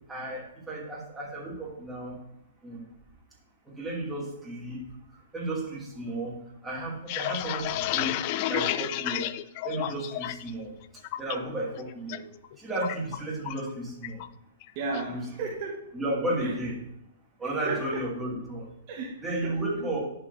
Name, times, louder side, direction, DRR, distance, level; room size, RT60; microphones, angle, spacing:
voice 1, 0.1-2.2 2.6-2.8 3.8-4.8 5.3-6.3 6.6-8.2 8.5-9.3 9.6-10.7 11.2-12.3 12.6-14.2 15.1-15.2 15.9-16.8 17.4-18.7 19.2-20.0, right 1 dB, 10° right, -4 dB, 2.6 m, -33 dB
sound 1, 6.8-10.5 10.8-11.3 11.7-12.2 12.4-13.7 14.0-14.3 14.6-15.1, left 14 dB, 45° left, 0.4 m, -31 dB
voice 2, 14.7-15.9 16.4-16.6 17.4-18.0 18.9-19.9, right 4 dB, 45° right, -1 dB, 1.5 m, -35 dB
11.0 x 5.3 x 2.7 m, 0.83 s
hypercardioid pair, 130°, 0 cm